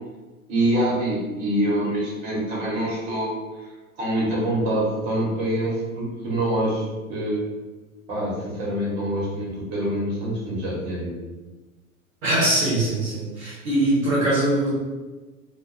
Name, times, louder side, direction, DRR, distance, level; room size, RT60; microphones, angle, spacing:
voice 1, 0.5-3.7 4.0-7.4 8.1-11.1, right 1 dB, 50° right, -5 dB, 1.2 m, -25 dB
voice 2, 12.2-14.7, right 1 dB, 70° right, -8 dB, 0.9 m, -22 dB
2.4 x 2.2 x 2.6 m, 1.2 s
figure-of-eight pair, 90°, 42 cm